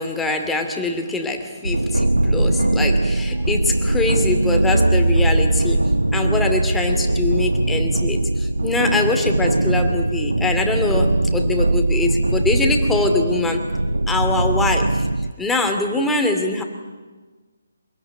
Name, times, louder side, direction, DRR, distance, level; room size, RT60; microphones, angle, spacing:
voice 1, 0.0-13.7 14.1-15.1 15.4-16.6, left 3 dB, 5° left, 3 dB, 2.6 m, -23 dB
sound 1, 1.6-15.3, right 2 dB, 90° right, 0.7 m, -20 dB
25.5 x 22.5 x 9.6 m, 1.3 s
figure-of-eight pair, 145°, 0 cm